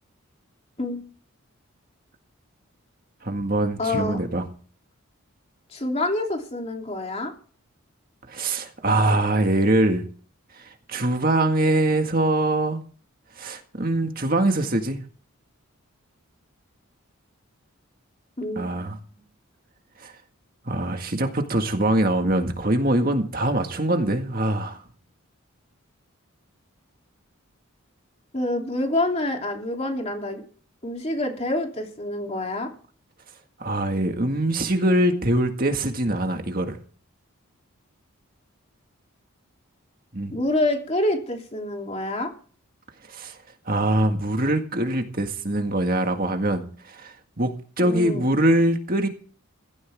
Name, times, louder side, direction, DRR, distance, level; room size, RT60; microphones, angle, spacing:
voice 1, 3.2-4.4 8.3-10.1 10.5-12.8 13.4-15.0 18.6-19.0 20.0-20.1 20.7-24.8 33.6-36.8 40.1-40.4 43.1-43.4 43.7-49.1, right 1 dB, 40° right, 1.8 m, -23 dB
voice 2, 3.8-4.2 5.7-7.3 18.4-18.8 28.3-30.4 30.8-32.7 40.3-42.3 47.8-48.2, left 1 dB, 30° left, 3.1 m, -27 dB
16.5 x 16.0 x 3.6 m
head